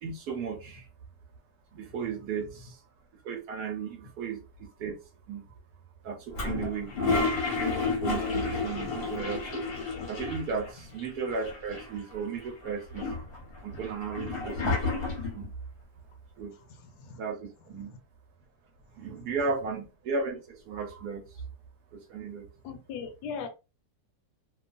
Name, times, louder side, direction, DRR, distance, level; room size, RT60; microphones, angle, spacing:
voice 1, 0.0-0.9 1.7-2.8 3.2-4.9 5.3-5.5 6.0-7.2 8.0-9.7 10.1-13.1 13.6-14.8 15.1-15.5 16.4-16.5 17.1-17.9 19.0-21.4 21.9-22.5, right 5 dB, 70° right, 1.1 m, -35 dB
Toilet flush, 6.3-10.7 11.0-11.1 11.3-12.1 12.6-15.5, left 3 dB, 45° left, 0.9 m, -31 dB
voice 2, 16.8-17.2 17.9-18.0 22.6-23.5, left 6 dB, 75° left, 1.1 m, -39 dB
2.9 x 2.3 x 2.4 m
omnidirectional pair, 1.9 m